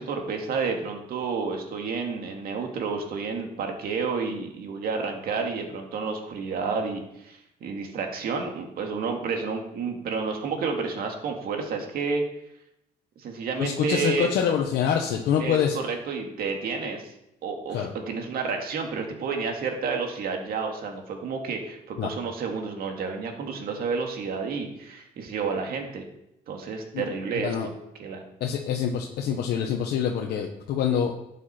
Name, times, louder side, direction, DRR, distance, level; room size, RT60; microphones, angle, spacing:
voice 1, 0.0-12.2 13.2-14.3 15.4-17.1 17.4-26.0 26.5-27.7 28.0-28.2, right 5 dB, 60° right, 3 dB, 2.1 m, -30 dB
voice 2, 13.6-15.8 17.7-17.9 22.0-22.1 26.9-27.0 27.3-27.7 28.4-31.1, left 8 dB, 75° left, 1 dB, 1.1 m, -25 dB
11.5 x 8.4 x 4.4 m, 0.83 s
cardioid pair, 110°, 17 cm